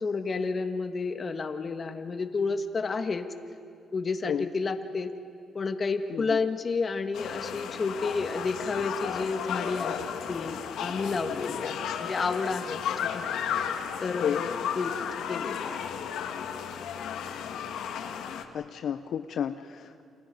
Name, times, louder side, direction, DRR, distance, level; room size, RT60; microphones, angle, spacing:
voice 1, 0.0-3.3 3.9-5.1 5.5-13.3 14.0-14.9 15.3-15.8, left 4 dB, 40° left, 8 dB, 1.7 m, -31 dB
sound 1, 7.1-18.4, left 8 dB, 80° left, 1.7 m, -34 dB
voice 2, 18.5-20.0, left 8 dB, 65° left, 9 dB, 0.7 m, -31 dB
29.0 x 27.0 x 5.4 m, 2.6 s
cardioid pair, 90°, 0 cm